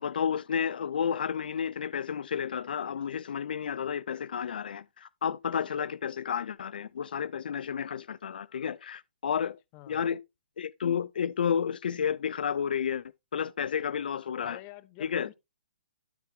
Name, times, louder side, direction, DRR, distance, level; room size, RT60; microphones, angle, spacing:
voice 1, 0.0-9.6 9.9-10.2 10.6-13.0 13.3-14.6 15.0-15.3, left 7 dB, 70° left, 0.5 m, -31 dB
voice 2, 14.4-15.4, left 17 dB, 30° left, 0.8 m, -48 dB
13.0 x 4.5 x 3.5 m
hypercardioid pair, 145°, 5 cm